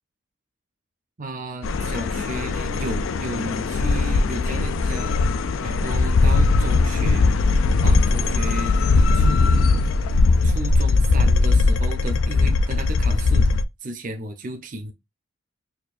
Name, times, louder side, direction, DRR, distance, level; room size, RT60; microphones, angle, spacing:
voice 1, 1.2-5.2 5.6-7.3 7.8-8.7 9.1-9.8 10.4-13.5 13.8-14.9, right 2 dB, 40° right, 0.6 m, -34 dB
sound 1, 1.6-13.6, left 3 dB, 80° left, 0.4 m, -19 dB
4.4 x 2.6 x 2.4 m
head